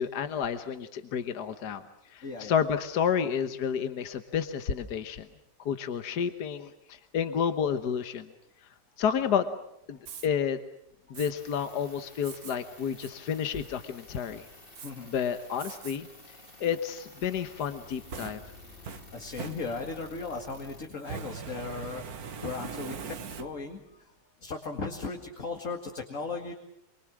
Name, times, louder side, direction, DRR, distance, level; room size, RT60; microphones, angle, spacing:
voice 1, 0.0-1.8 2.1-5.3 5.6-8.3 9.0-9.5 9.9-10.6 11.1-14.5 15.1-16.1 16.6-18.4, left 7 dB, 65° left, 9 dB, 1.7 m, -30 dB
voice 2, 2.2-2.6 14.8-15.1 17.4-17.5 18.9-24.1 24.4-26.5, left 4 dB, 45° left, 3 dB, 2.4 m, -37 dB
Fire, 10.0-10.3 11.1-11.3 12.2-12.6 13.0-13.1 13.6-14.1 14.8-14.9 15.6-16.0 16.4-16.5 17.6-20.1 21.0-23.8, right 6 dB, 60° right, 1.6 m, -42 dB
sound 1, 11.3-20.9, left 2 dB, 30° left, 2.9 m, -52 dB
27.5 x 24.0 x 7.5 m, 0.78 s
omnidirectional pair, 1.9 m